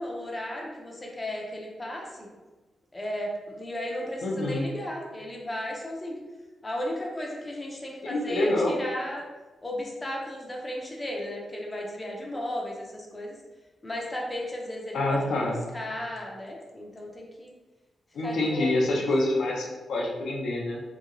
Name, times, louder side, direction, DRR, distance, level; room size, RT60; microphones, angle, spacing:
voice 1, 0.0-2.3 2.9-6.2 6.6-9.2 9.6-13.3 13.8-17.5 18.2-19.1, left 1 dB, 15° left, -1 dB, 0.4 m, -35 dB
voice 2, 4.2-4.7 8.0-8.7 14.9-15.6 18.1-20.8, left 2 dB, 75° left, -1 dB, 0.5 m, -26 dB
2.9 x 2.7 x 2.5 m, 1.2 s
wide cardioid pair, 175°, 0 cm